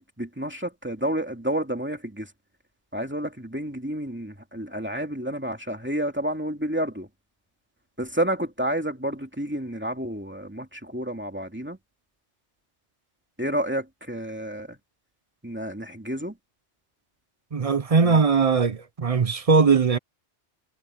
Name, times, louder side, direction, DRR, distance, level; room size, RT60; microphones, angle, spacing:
voice 1, 0.0-2.3 2.9-7.1 8.0-11.8 13.4-14.8 15.4-16.3 18.0-18.2, right 1 dB, 10° right, 2.4 m, -30 dB
voice 2, 17.5-20.0, right 5 dB, 40° right, 0.7 m, -20 dB
omnidirectional pair, 1.2 m